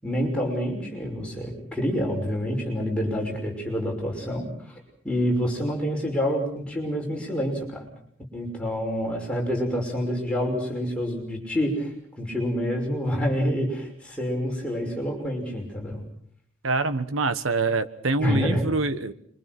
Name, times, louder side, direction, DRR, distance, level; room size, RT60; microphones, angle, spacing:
voice 1, 0.0-4.8 5.0-7.9 8.3-16.0 18.2-18.6, equal, 5° left, -1 dB, 5.9 m, -27 dB
voice 2, 16.6-19.1, right 3 dB, 70° right, 11 dB, 1.3 m, -25 dB
27.5 x 24.0 x 6.1 m, 0.64 s
head